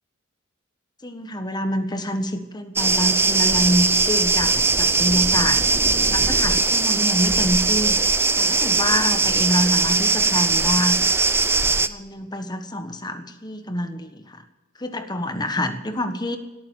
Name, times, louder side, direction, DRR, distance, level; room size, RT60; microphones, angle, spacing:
voice 1, 1.0-5.6 6.1-11.0 11.9-14.4 14.8-16.4, equal, 20° left, 8 dB, 1.3 m, -26 dB
sound 1, 2.8-11.9, right 3 dB, 10° right, 0.5 m, -20 dB
17.5 x 9.1 x 8.4 m, 1.1 s
head